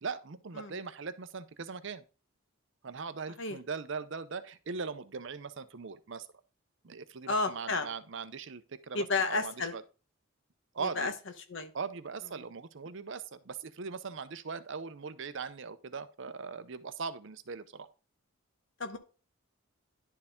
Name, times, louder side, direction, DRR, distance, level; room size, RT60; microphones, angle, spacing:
voice 1, 0.0-2.0 2.8-6.3 6.8-9.8 10.7-11.1 11.7-17.9, right 5 dB, 60° right, 0.6 m, -40 dB
voice 2, 7.3-7.9 8.9-9.7 10.8-11.1 11.5-11.7 18.8-19.0, left 3 dB, 60° left, 1.1 m, -31 dB
11.0 x 4.7 x 3.6 m
head